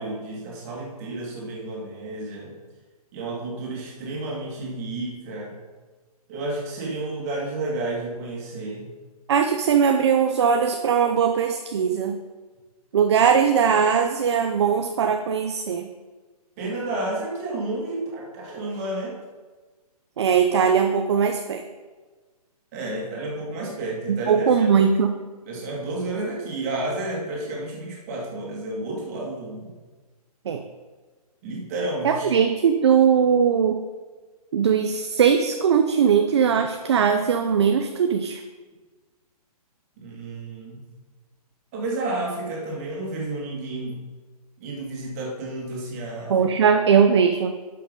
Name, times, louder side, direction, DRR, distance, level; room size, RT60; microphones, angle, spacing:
voice 1, 0.0-2.5 3.1-5.5 6.3-8.9 16.6-19.1 22.7-24.7 25.4-29.7 31.4-32.4 40.0-40.9 41.7-44.0 44.6-46.3, right 2 dB, 25° right, -2 dB, 2.1 m, -31 dB
voice 2, 9.3-12.2 12.9-15.9 20.2-21.6 24.1-25.2 30.5-30.6 32.0-33.8 34.5-38.4 46.3-47.5, right 7 dB, 45° right, 6 dB, 0.6 m, -20 dB
11.5 x 5.7 x 5.3 m, 1.3 s
hypercardioid pair, 170°, 20 cm